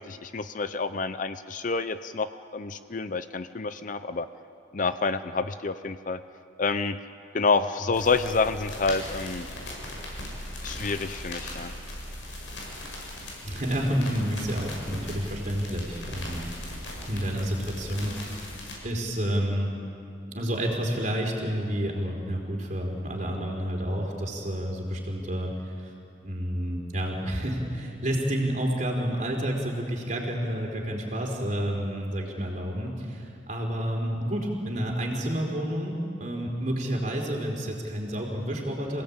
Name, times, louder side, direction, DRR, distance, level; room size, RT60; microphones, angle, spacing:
voice 1, 0.0-4.3 4.7-6.2 6.6-7.0 7.3-9.5 10.6-11.7, left 4 dB, 45° left, 11 dB, 0.6 m, -28 dB
sound 1, 7.9-18.7, left 1 dB, 80° left, 7.0 m, -39 dB
voice 2, 13.4-16.4 17.0-18.6 18.8-19.7 20.2-25.5 25.8-25.9 26.2-39.0, equal, 40° right, 0 dB, 4.3 m, -29 dB
27.5 x 17.5 x 8.8 m, 2.6 s
head